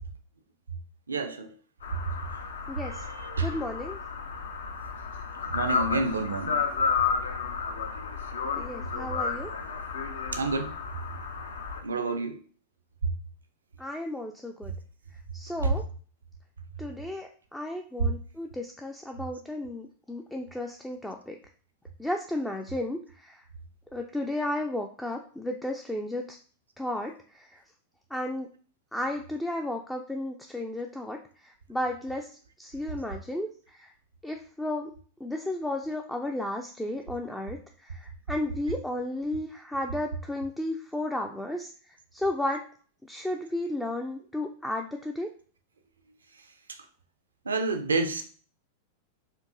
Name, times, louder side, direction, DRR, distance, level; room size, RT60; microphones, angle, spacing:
voice 1, 1.1-1.6 2.3-2.4 2.8-3.6 5.4-6.6 10.3-10.8 11.8-12.4 13.0-13.1 15.6-15.7 18.0-18.1 46.7-46.8 47.4-48.2, right 3 dB, 75° right, 0.4 m, -29 dB
sound 1, 1.8-11.8, left 5 dB, 65° left, 0.5 m, -32 dB
voice 2, 2.7-3.0 3.4-4.0 8.5-9.5 13.8-14.7 15.3-15.8 16.8-21.4 22.0-23.5 23.9-26.4 26.8-27.6 28.1-28.5 28.9-33.9 34.2-34.9 35.2-42.6 43.0-45.3, left 1 dB, 5° left, 0.3 m, -33 dB
4.4 x 2.6 x 2.5 m
figure-of-eight pair, 90°, 0 cm